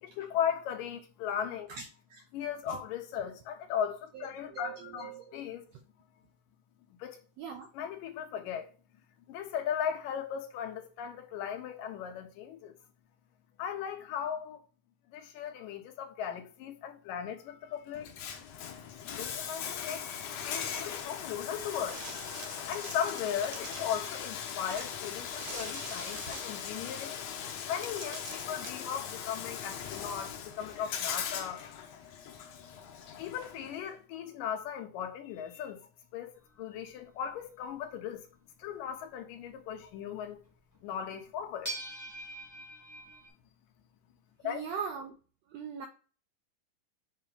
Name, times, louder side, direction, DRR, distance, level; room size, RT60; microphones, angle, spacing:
voice 1, 0.0-1.7 2.3-5.7 7.0-7.2 7.7-8.7 9.3-12.8 13.6-14.6 15.1-18.1 19.1-20.1 20.5-22.0 22.7-27.2 27.6-31.8 33.2-36.3 36.6-38.3 38.6-40.4 40.8-41.8 44.4-44.6, left 8 dB, 90° left, 2.6 m, -37 dB
voice 2, 4.1-5.4 7.4-7.7 44.4-45.2 45.5-45.9, right 6 dB, 80° right, 1.5 m, -40 dB
Bathtub (filling or washing), 17.9-33.9, left 8 dB, 70° left, 1.8 m, -40 dB
sound 1, 21.5-24.1 24.7-26.9 27.6-27.7 27.8-28.7, right 4 dB, 50° right, 1.4 m, -45 dB
sound 2, 36.4-38.0 40.7-40.8 41.6-43.3, right 2 dB, 15° left, 0.6 m, -42 dB
7.3 x 2.9 x 5.1 m
omnidirectional pair, 3.8 m